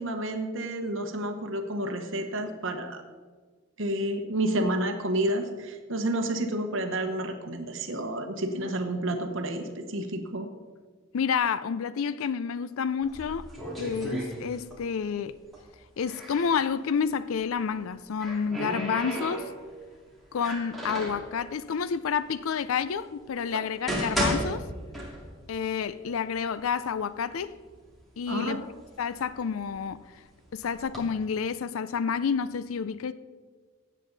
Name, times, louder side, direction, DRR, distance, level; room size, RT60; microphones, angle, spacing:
voice 1, 0.0-3.0 3.8-10.5 23.6-23.7 28.3-28.6, right 1 dB, 65° right, 1.1 m, -30 dB
voice 2, 11.1-13.5 13.8-15.4 16.0-19.5 20.3-24.6 25.5-27.5 28.2-28.6 29.0-30.2 30.5-33.1, left 6 dB, 80° left, 0.4 m, -29 dB
sound 1, 13.0-14.9 15.2-16.6 17.7-19.8 20.3-21.3 22.0-22.1 22.8-22.9 23.5-25.5 25.8-25.9 26.7-26.8 27.1-27.8 28.3-30.0 30.6-31.0, equal, ahead, 2.6 m, -33 dB
16.5 x 8.4 x 4.0 m
head